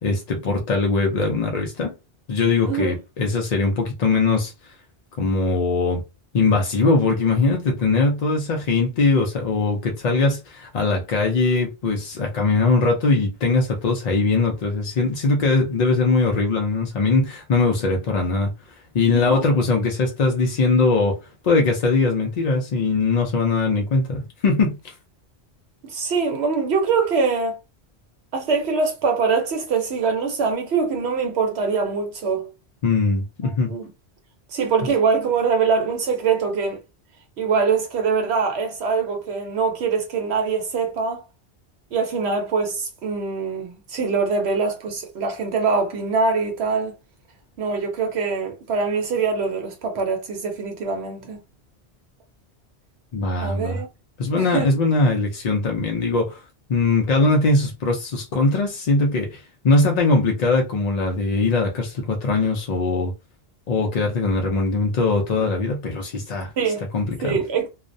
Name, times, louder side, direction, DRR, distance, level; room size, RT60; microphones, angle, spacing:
voice 1, 0.0-1.9 2.3-4.7 5.2-6.0 6.3-18.5 18.9-21.2 21.4-24.9 32.8-33.7 53.1-53.8 54.2-56.4 56.7-63.1 63.7-66.5 66.9-67.4, left 3 dB, 55° left, 0.4 m, -21 dB
voice 2, 25.8-27.6 28.3-32.5 33.7-33.9 34.5-36.8 37.4-41.2 41.9-46.9 47.6-51.4 53.4-53.9 54.3-54.7 66.6-66.8 67.2-67.7, right 5 dB, 75° right, 0.9 m, -23 dB
2.3 x 2.0 x 2.5 m
omnidirectional pair, 1.1 m